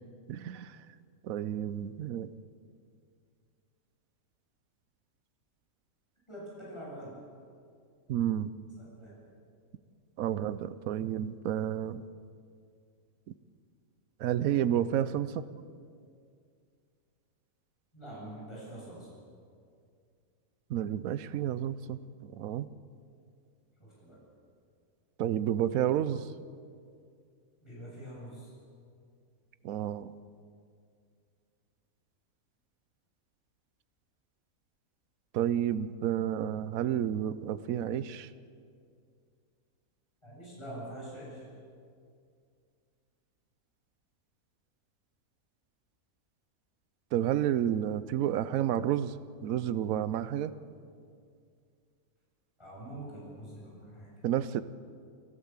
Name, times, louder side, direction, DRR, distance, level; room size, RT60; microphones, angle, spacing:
voice 1, 0.3-0.8 1.2-2.3 8.1-8.5 10.2-12.0 14.2-15.5 20.7-22.7 25.2-26.3 29.6-30.1 35.3-38.3 47.1-49.1 49.4-50.5 54.2-54.6, right 10 dB, 70° right, 15 dB, 1.1 m, -30 dB
voice 2, 6.3-7.2 8.8-9.2 17.9-19.1 23.8-24.2 27.6-28.5 40.2-41.4 52.6-54.1, right 1 dB, 20° left, -6 dB, 7.5 m, -45 dB
28.5 x 13.0 x 7.4 m, 2.3 s
omnidirectional pair, 1.6 m